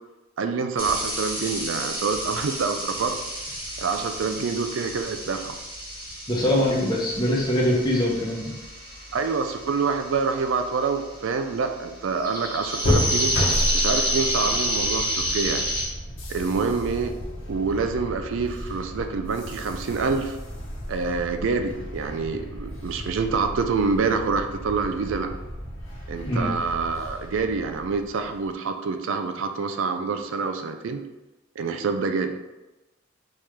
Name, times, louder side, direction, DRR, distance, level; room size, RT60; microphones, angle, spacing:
voice 1, 0.4-3.1 3.8-5.6 9.1-13.3 13.7-15.6 16.3-17.1 17.5-20.4 20.9-25.3 26.1-31.0 31.6-32.3, right 4 dB, 65° right, 6 dB, 0.4 m, -26 dB
sound 1, 0.8-15.9, equal, 10° right, 1.5 m, -30 dB
voice 2, 6.3-8.5 26.2-26.5, left 1 dB, 20° left, -3 dB, 0.9 m, -23 dB
sound 2, 12.8-28.5, left 1 dB, 65° left, 1.1 m, -32 dB
4.4 x 3.6 x 3.2 m, 1.0 s
head